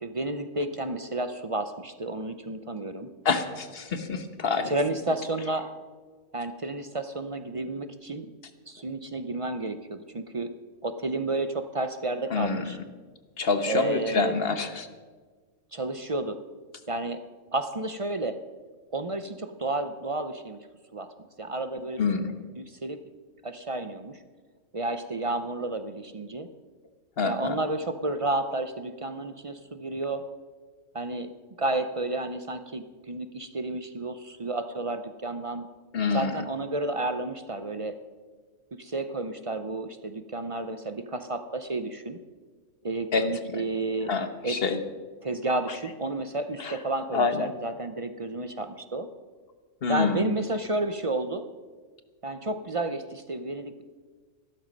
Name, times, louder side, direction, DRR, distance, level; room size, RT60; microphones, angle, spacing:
voice 1, 0.0-3.1 4.6-5.7 6.3-8.3 8.7-10.5 10.8-12.8 13.7-14.4 15.7-16.4 16.9-17.2 17.5-18.4 18.9-20.6 20.9-21.1 21.4-22.0 22.6-23.0 23.4-24.2 24.7-26.5 27.2-30.2 30.9-31.3 31.6-35.7 36.1-38.0 38.8-42.2 42.8-44.1 44.4-44.6 45.2-49.1 49.9-51.4 52.2-53.8, right 2 dB, 35° right, 9 dB, 0.5 m, -31 dB
voice 2, 3.2-4.7 12.3-12.8 13.4-14.9 22.0-22.3 27.2-27.6 35.9-36.4 43.1-43.6 44.1-44.8 46.6-46.8 47.1-47.5 49.8-50.3, left 4 dB, 50° left, 9 dB, 1.2 m, -27 dB
14.5 x 12.5 x 5.3 m, 1.5 s
omnidirectional pair, 1.3 m